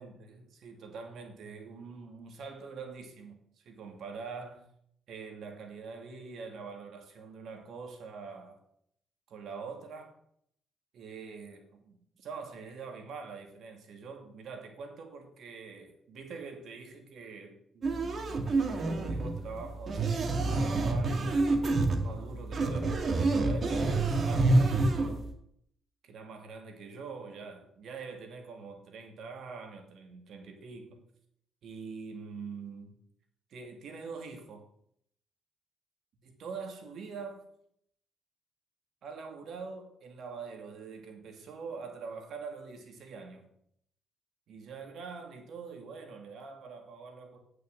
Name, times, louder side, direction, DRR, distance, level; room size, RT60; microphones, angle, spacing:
voice 1, 0.0-4.7 5.1-8.6 9.3-10.2 10.9-21.4 22.0-24.9 26.0-31.0 31.6-33.0 33.5-34.7 36.2-37.5 39.0-43.5 44.5-47.4, right 5 dB, 70° right, 2.5 m, -44 dB
sound 1, 17.8-25.3, right 2 dB, 45° right, 1.9 m, -27 dB
8.8 x 6.6 x 7.5 m
cardioid pair, 90°, 0 cm